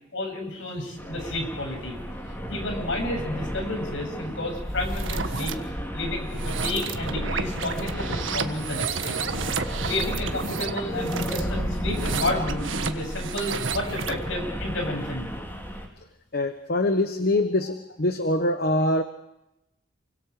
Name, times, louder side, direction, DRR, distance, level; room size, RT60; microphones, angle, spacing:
voice 1, 0.1-2.0 2.5-5.6 5.9-8.1 8.3-9.2 9.8-15.3, left 1 dB, 75° left, 3 dB, 7.9 m, -31 dB
sound 1, 1.0-15.9, equal, 10° left, 3.9 m, -33 dB
sound 2, 4.8-5.5 6.2-14.3, right 5 dB, 85° right, 1.6 m, -32 dB
voice 2, 16.3-19.0, left 1 dB, 55° left, 8 dB, 1.3 m, -24 dB
28.5 x 25.5 x 5.0 m, 0.91 s
head